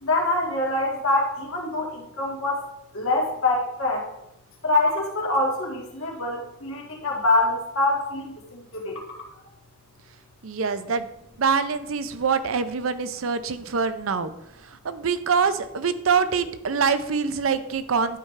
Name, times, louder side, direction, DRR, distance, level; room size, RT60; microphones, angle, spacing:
voice 1, 0.0-2.6 2.9-4.0 4.6-9.0, left 2 dB, 85° left, -2 dB, 2.1 m, -25 dB
voice 2, 10.4-11.1 11.4-14.3 14.6-18.2, right 5 dB, 75° right, 12 dB, 0.6 m, -24 dB
11.5 x 4.9 x 3.3 m, 0.85 s
head